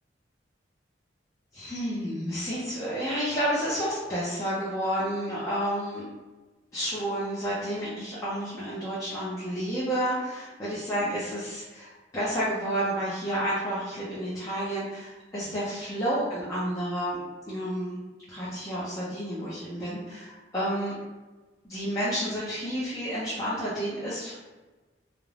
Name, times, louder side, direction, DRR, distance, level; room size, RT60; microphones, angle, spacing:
voice 1, 1.5-6.0 6.7-18.0 18.3-21.0 21.6-24.3, equal, 15° left, -10 dB, 0.5 m, -30 dB
2.4 x 2.1 x 3.2 m, 1.2 s
head